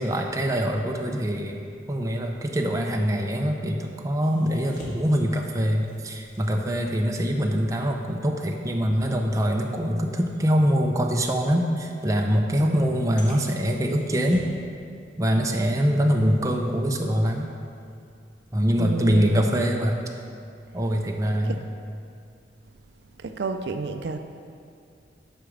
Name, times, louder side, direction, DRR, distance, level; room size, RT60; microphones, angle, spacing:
voice 1, 0.0-1.6 1.9-14.5 15.2-17.5 18.5-20.1 20.7-21.6, equal, 20° right, 2 dB, 0.6 m, -24 dB
sound 1, 4.2-10.0 10.4-10.6 11.2-11.3 12.1-12.2 13.2-14.7 15.0-15.5 15.8-18.0 18.4-18.6, equal, 50° left, 1.7 m, -46 dB
voice 2, 12.6-13.0 18.8-19.6 21.4-21.6 23.2-24.2, right 4 dB, 75° right, 7 dB, 0.4 m, -31 dB
8.0 x 4.9 x 6.5 m, 2.4 s
head